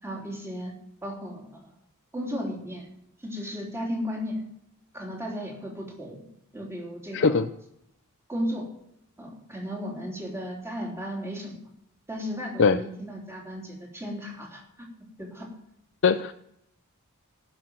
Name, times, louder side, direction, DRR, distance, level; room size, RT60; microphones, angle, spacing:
voice 1, 0.0-0.7 1.0-1.7 2.1-2.9 3.2-4.4 4.9-6.2 6.5-7.4 8.3-8.7 9.2-11.6 12.1-14.6 15.2-15.5, equal, 10° right, -1 dB, 3.2 m, -35 dB
voice 2, 7.1-7.5 12.6-12.8 16.0-16.3, left 5 dB, 55° left, 7 dB, 0.6 m, -20 dB
18.5 x 6.4 x 7.7 m, 0.76 s
head